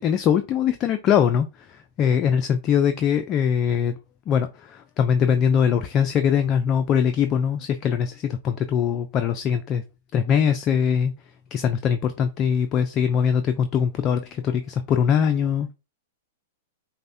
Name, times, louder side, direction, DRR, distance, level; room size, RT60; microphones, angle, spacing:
voice 1, 0.0-4.0 4.3-9.8 10.1-15.7, left 8 dB, 35° left, 0.4 m, -22 dB
5.2 x 2.1 x 2.6 m
hypercardioid pair, 105°, 0 cm